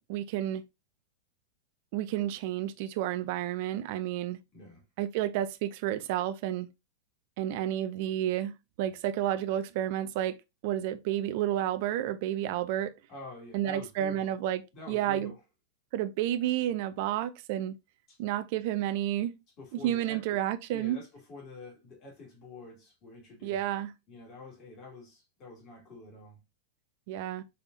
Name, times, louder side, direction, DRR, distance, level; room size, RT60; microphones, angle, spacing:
voice 1, 0.1-0.6 1.9-4.4 5.0-6.7 7.4-10.3 10.6-12.9 13.5-14.6 14.9-15.3 15.9-17.7 18.2-19.3 19.7-21.0 23.4-23.9 27.1-27.4, right 12 dB, 50° right, 0.6 m, -31 dB
voice 2, 4.5-4.8 13.1-14.4 14.7-15.4 18.1-18.2 19.6-20.4 20.7-23.6 24.1-26.4, left 3 dB, 35° left, 2.6 m, -47 dB
5.6 x 3.4 x 2.6 m
figure-of-eight pair, 90°, 0 cm